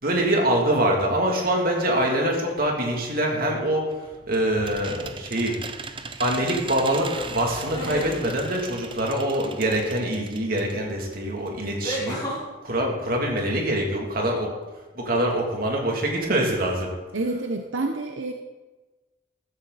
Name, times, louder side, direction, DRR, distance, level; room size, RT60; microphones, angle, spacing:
voice 1, 0.0-3.9 4.3-5.5 6.2-12.2 12.6-14.5 14.9-16.9, right 1 dB, 50° right, 0 dB, 2.9 m, -24 dB
sound 1, 3.9-10.8 11.1-11.2 11.5-11.6, right 4 dB, 25° right, 0.7 m, -38 dB
sound 2, 5.0-5.4 7.5-8.2 10.4-10.5 11.8-12.4, equal, 20° left, 4.7 m, -31 dB
voice 2, 17.1-18.3, right 2 dB, 85° right, 4 dB, 0.9 m, -28 dB
14.5 x 14.0 x 4.2 m, 1.2 s
head